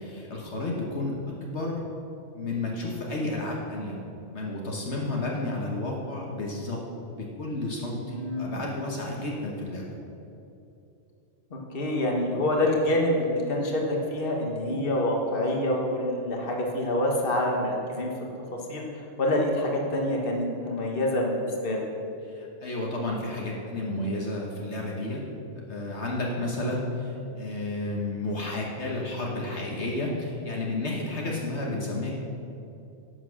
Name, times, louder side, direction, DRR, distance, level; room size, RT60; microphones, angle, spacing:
voice 1, 0.0-1.8 2.3-4.0 4.3-6.8 7.1-9.9 22.2-25.2 25.5-32.2, left 2 dB, 65° left, -2 dB, 1.6 m, -31 dB
voice 2, 8.1-8.6 11.7-18.1 18.7-18.8 19.2-21.8, left 1 dB, 50° left, 0 dB, 1.6 m, -26 dB
11.0 x 7.3 x 6.3 m, 2.8 s
omnidirectional pair, 1.3 m